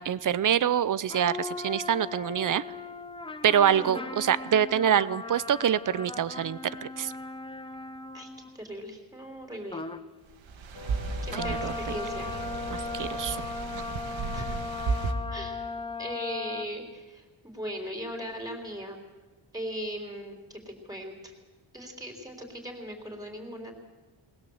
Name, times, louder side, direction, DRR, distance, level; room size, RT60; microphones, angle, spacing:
voice 1, 0.0-2.6 3.4-7.1 11.3-12.0 12.7-13.4 13.7-13.8, right 9 dB, 45° right, 17 dB, 0.6 m, -26 dB
sound 1, 1.1-8.6 9.7-10.1 11.3-16.6, left 3 dB, 10° left, 0.7 m, -37 dB
voice 2, 3.7-4.2 8.1-9.8 11.2-12.3 14.3-14.6 15.3-15.6 16.0-19.0 19.5-21.3 21.7-23.7, equal, 10° right, 1 dB, 3.6 m, -38 dB
sound 2, 10.4-15.1, right 4 dB, 85° right, 1.8 m, -34 dB
sound 3, 10.7-14.0, left 6 dB, 60° left, 1.4 m, -46 dB
20.5 x 20.5 x 7.9 m, 1.3 s
wide cardioid pair, 175°, 45 cm